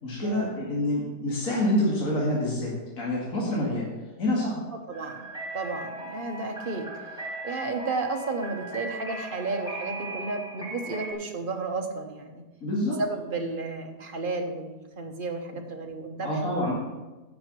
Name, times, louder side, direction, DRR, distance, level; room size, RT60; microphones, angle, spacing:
voice 1, 0.0-3.9 4.2-4.6 12.6-13.0 16.2-16.7, left 1 dB, 55° left, -4 dB, 2.6 m, -27 dB
sound 1, 4.9-11.1, right 2 dB, ahead, 3.0 m, -38 dB
voice 2, 4.9-5.3 5.5-7.2 7.4-12.4 12.8-16.6, right 3 dB, 35° right, 4 dB, 1.2 m, -33 dB
9.5 x 6.5 x 7.5 m, 1.2 s
omnidirectional pair, 1.7 m